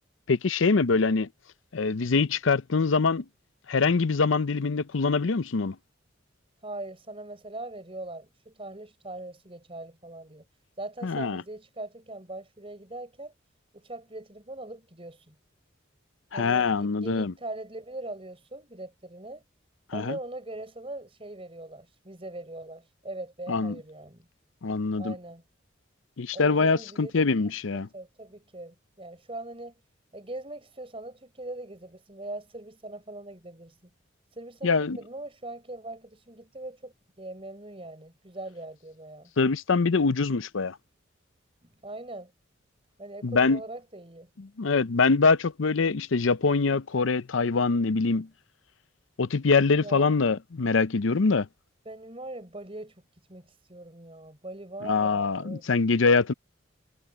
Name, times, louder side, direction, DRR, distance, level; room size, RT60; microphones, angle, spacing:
voice 1, 0.3-1.3 1.7-3.2 3.7-5.8 11.0-11.4 16.3-17.3 19.9-20.2 23.5-23.8 24.6-25.1 26.2-27.9 34.6-35.0 39.4-40.8 43.2-43.6 44.4-48.3 49.2-51.5 54.8-56.3, left 4 dB, 75° left, 0.6 m, -24 dB
voice 2, 6.6-10.5 10.8-13.3 13.7-15.4 16.3-19.4 19.9-24.3 25.0-25.4 26.3-27.1 27.9-29.7 30.1-33.8 34.3-39.3 41.8-42.3 43.0-44.3 49.8-50.1 51.9-53.0 53.3-55.7, right 2 dB, 30° right, 5.2 m, -41 dB
head